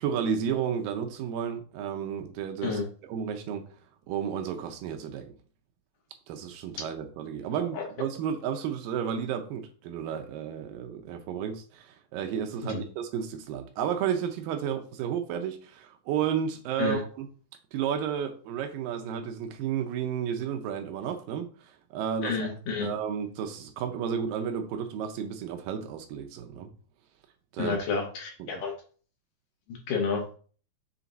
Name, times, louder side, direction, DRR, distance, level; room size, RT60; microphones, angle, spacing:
voice 1, 0.0-3.6 4.1-5.3 6.3-17.3 17.7-22.5 22.8-26.7 27.5-27.8 28.4-28.6, right 8 dB, 80° right, 5 dB, 2.3 m, -32 dB
voice 2, 22.2-22.9 27.6-28.7 29.9-30.3, left 5 dB, 70° left, 1 dB, 2.9 m, -30 dB
7.0 x 3.4 x 4.0 m, 0.41 s
omnidirectional pair, 4.2 m